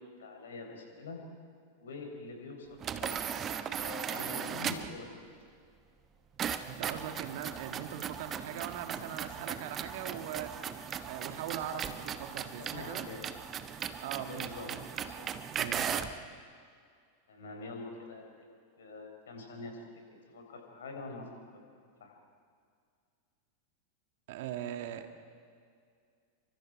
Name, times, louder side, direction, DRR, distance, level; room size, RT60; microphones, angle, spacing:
voice 1, 0.2-1.2 1.8-5.3 12.6-13.2 14.3-14.7 15.0-15.3 17.3-19.7 20.3-21.3 22.0-22.2, left 3 dB, 65° left, 3 dB, 4.5 m, -45 dB
sound 1, 2.8-5.0 6.4-16.2, right 8 dB, 25° right, 1.0 m, -37 dB
voice 2, 6.7-10.6 11.0-13.1 14.0-14.8 15.5-15.9 24.3-25.1, right 10 dB, 50° right, 7 dB, 1.7 m, -40 dB
28.5 x 24.5 x 4.9 m, 2.2 s
figure-of-eight pair, 90°, 0 cm